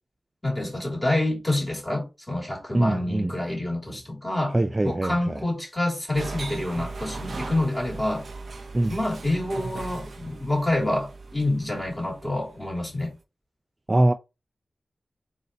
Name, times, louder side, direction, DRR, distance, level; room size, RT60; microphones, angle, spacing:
voice 1, 0.4-4.6 4.8-8.3 8.9-13.1, left 1 dB, 15° left, 2.5 m, -27 dB
voice 2, 2.7-3.3 4.5-5.1 8.7-8.9 13.9-14.1, right 1 dB, 25° right, 0.3 m, -22 dB
sound 1, 6.1-12.9, right 3 dB, 70° right, 0.6 m, -38 dB
3.8 x 2.8 x 4.0 m
cardioid pair, 55°, 0 cm